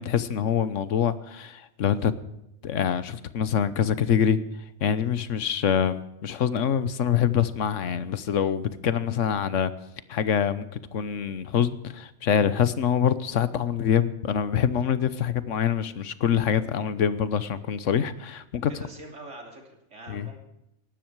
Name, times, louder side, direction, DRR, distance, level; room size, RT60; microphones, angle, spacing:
voice 1, 0.0-2.1 2.6-4.4 4.8-9.7 10.1-18.7 20.1-20.3, left 8 dB, 90° left, 15 dB, 1.3 m, -25 dB
voice 2, 18.7-20.4, right 1 dB, 80° right, 3 dB, 3.3 m, -44 dB
18.0 x 12.5 x 4.7 m, 0.85 s
omnidirectional pair, 1.2 m